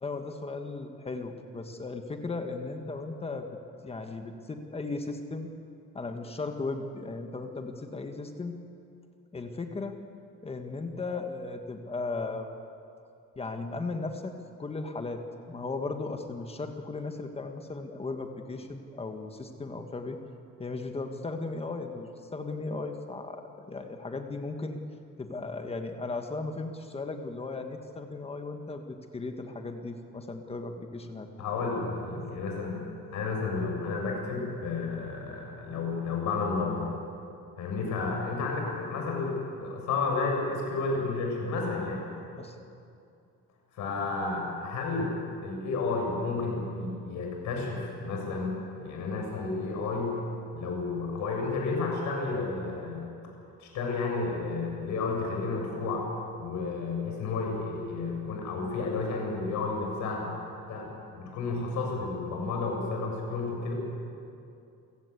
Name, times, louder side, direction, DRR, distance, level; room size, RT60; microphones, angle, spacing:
voice 1, 0.0-3.5 3.8-5.5 5.9-8.6 9.3-10.0 10.4-12.5 13.3-14.3 14.6-15.2 15.5-20.2 20.6-24.8 25.2-31.3 42.4-42.5, left 3 dB, 20° left, 5 dB, 1.5 m, -36 dB
voice 2, 31.4-32.8 33.1-36.9 37.6-42.0 43.7-45.1 45.4-48.5 48.8-50.2 50.5-53.1 53.6-56.0 56.4-60.3 60.7-63.7, left 3 dB, 70° left, 0 dB, 7.0 m, -31 dB
29.0 x 16.5 x 8.3 m, 2.6 s
cardioid pair, 155°, 31 cm